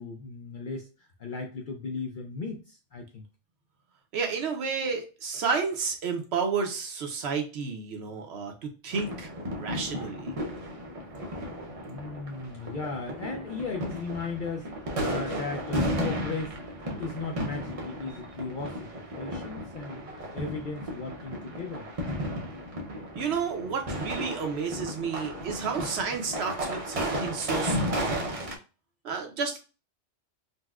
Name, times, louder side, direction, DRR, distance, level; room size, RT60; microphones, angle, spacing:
voice 1, 0.0-3.2 11.9-14.7 15.0-21.9, left 4 dB, 60° left, 2 dB, 0.6 m, -36 dB
voice 2, 4.1-10.3 23.1-28.3 29.0-29.6, right 5 dB, 65° right, 4 dB, 0.9 m, -31 dB
sound 1, 8.9-28.6, equal, 40° right, 0.5 m, -34 dB
4.1 x 2.1 x 2.3 m, 0.33 s
omnidirectional pair, 1.3 m